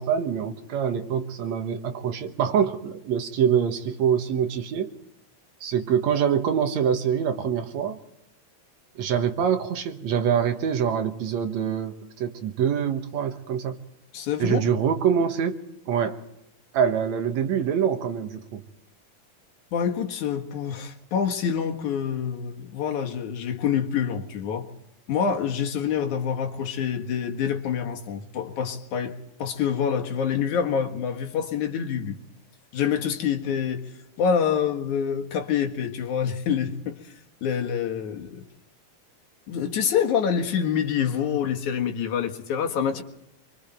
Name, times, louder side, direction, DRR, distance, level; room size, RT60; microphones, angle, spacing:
voice 1, 0.0-4.9 5.6-8.0 9.0-13.8 14.4-15.6 15.9-16.2 16.7-18.6, right 8 dB, 70° right, 7 dB, 2.5 m, -25 dB
voice 2, 14.1-14.6 19.7-24.7 25.1-32.2 32.7-33.9 34.2-37.0 37.4-38.5 39.5-43.0, left 7 dB, 80° left, 3 dB, 3.1 m, -26 dB
25.5 x 24.0 x 4.4 m, 0.83 s
omnidirectional pair, 3.4 m